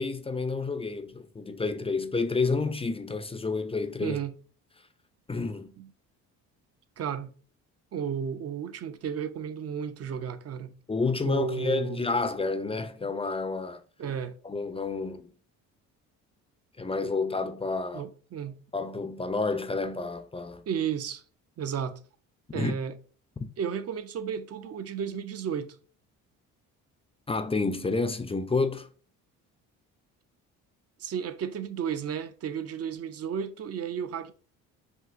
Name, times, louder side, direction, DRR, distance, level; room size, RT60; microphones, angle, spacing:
voice 1, 0.0-4.2 5.3-5.7 10.9-13.8 14.4-15.3 16.8-18.0 18.7-20.6 22.5-22.7 23.4-23.5 27.3-28.9, left 3 dB, 15° left, 0.5 m, -29 dB
voice 2, 4.0-4.3 5.8-5.9 7.0-7.3 7.9-10.7 11.2-12.0 14.0-14.4 17.9-18.6 20.7-21.2 21.6-22.0 22.5-22.9 23.6-25.8 31.0-34.3, right 7 dB, 45° right, 0.7 m, -33 dB
5.7 x 2.7 x 2.5 m
supercardioid pair, 70°, 35 cm